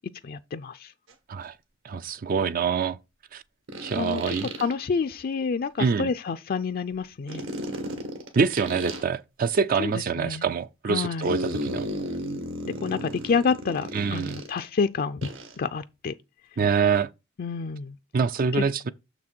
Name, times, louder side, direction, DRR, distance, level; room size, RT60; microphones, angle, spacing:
voice 1, 0.2-0.9 3.9-4.2 4.6-7.4 9.8-9.9 10.2-10.4 10.9-11.3 12.6-15.2 15.6-16.1 17.4-17.9, left 5 dB, 50° left, 0.4 m, -28 dB
sound 1, 1.1-1.2 3.7-4.7 7.3-9.0 11.2-14.7 15.2-15.6, right 1 dB, 75° right, 1.9 m, -34 dB
voice 2, 1.8-3.0 3.3-3.4 3.8-4.5 5.8-6.1 8.3-11.9 13.9-14.4 16.6-17.1 18.1-18.9, right 5 dB, 45° right, 0.4 m, -25 dB
6.8 x 6.1 x 4.4 m
head